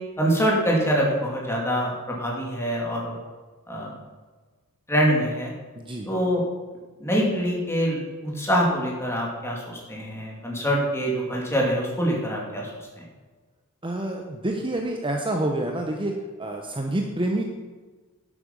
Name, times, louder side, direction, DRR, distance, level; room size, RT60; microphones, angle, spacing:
voice 1, 0.2-3.1 3.7-3.9 4.9-5.5 6.0-6.4 7.0-13.0, equal, 10° left, -2 dB, 2.5 m, -25 dB
voice 2, 5.8-6.1 13.8-16.1 16.4-17.5, right 1 dB, 25° right, 2 dB, 0.9 m, -27 dB
11.5 x 8.7 x 5.3 m, 1.4 s
head